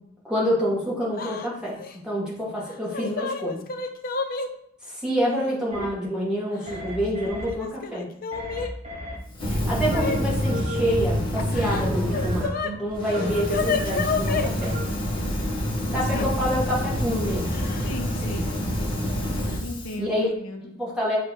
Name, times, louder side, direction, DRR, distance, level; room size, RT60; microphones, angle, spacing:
voice 1, 0.2-3.6 4.9-8.1 9.5-12.5 12.8-14.7 15.9-17.6 20.0-20.3 20.8-21.2, equal, 5° right, -6 dB, 1.9 m, -27 dB
Yell / Crying sobbing, 1.2-1.5 1.8-2.0 2.7-4.5 5.4-5.5 6.6-7.1 7.4-8.7 9.9-10.2 11.4-12.7 13.0-14.5 16.1-16.3 17.5-17.9 18.2-18.4 19.5-19.6 20.0-20.3, left 5 dB, 45° left, 0.5 m, -30 dB
sound 1, 5.7-5.9 6.7-7.5 8.3-9.2 9.9-10.8 11.6-12.8 13.1-14.0 14.6-14.9, equal, 30° right, 1.1 m, -35 dB
Fire, 9.3-12.5 12.9-19.9, equal, 25° left, 1.6 m, -27 dB
voice 2, 17.8-18.5 19.6-20.8, left 2 dB, 80° left, 4 dB, 0.9 m, -35 dB
6.5 x 2.9 x 5.0 m, 0.72 s
head